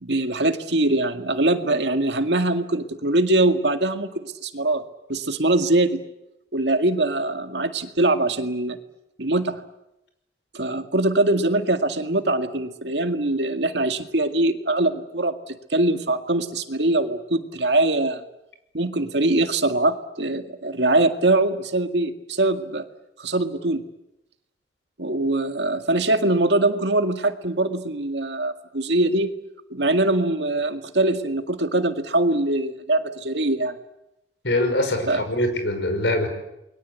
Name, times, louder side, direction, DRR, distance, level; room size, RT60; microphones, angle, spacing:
voice 1, 0.0-4.8 5.1-6.0 6.5-8.8 9.2-9.6 10.5-18.2 18.7-22.8 23.2-23.8 25.0-29.3 29.7-33.8 35.1-35.2, right 2 dB, 75° right, 7 dB, 2.0 m, -22 dB
voice 2, 34.4-36.3, left 1 dB, 85° left, 7 dB, 5.7 m, -23 dB
28.5 x 22.0 x 8.3 m, 0.89 s
head